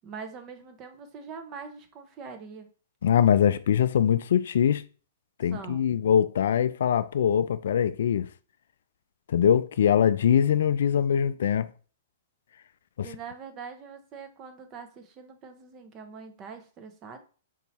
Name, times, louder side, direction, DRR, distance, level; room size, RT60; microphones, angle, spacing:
voice 1, 0.0-2.7 5.5-5.9 13.0-17.2, right 5 dB, 30° right, 0.9 m, -43 dB
voice 2, 3.0-4.8 5.4-8.3 9.3-11.7 13.0-13.1, left 8 dB, 70° left, 0.3 m, -22 dB
4.5 x 2.8 x 4.1 m
hypercardioid pair, 125°, 0 cm